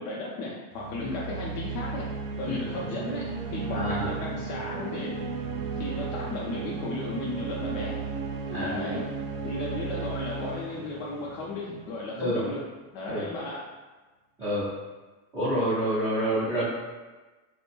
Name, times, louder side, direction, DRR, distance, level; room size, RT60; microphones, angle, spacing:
voice 1, 0.0-2.1 2.4-5.2 5.8-8.0 8.6-9.1 9.4-12.6 12.9-13.6, left 2 dB, 70° left, -5 dB, 0.6 m, -35 dB
sound 1, 0.7-12.3, right 4 dB, 75° right, 0.6 m, -34 dB
voice 2, 3.7-4.1 8.5-9.0 12.2-12.4 13.1-13.3 14.4-14.7 15.3-16.7, equal, 10° right, -16 dB, 0.3 m, -28 dB
2.5 x 2.1 x 2.9 m, 1.3 s
supercardioid pair, 160°, 46 cm